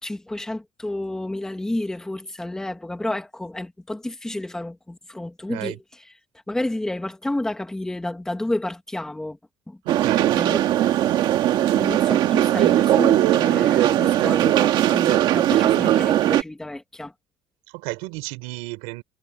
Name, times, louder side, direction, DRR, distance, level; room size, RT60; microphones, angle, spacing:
voice 1, 0.0-5.8 6.5-9.4 9.7-9.8 10.4-10.6 11.5-17.1, left 1 dB, 5° left, 1.9 m, -30 dB
voice 2, 9.8-10.4 17.7-19.0, right 24 dB, 85° right, 4.0 m, -32 dB
sound 1, 9.9-16.4, right 13 dB, 50° right, 1.8 m, -19 dB
cardioid pair, 165°, 10 cm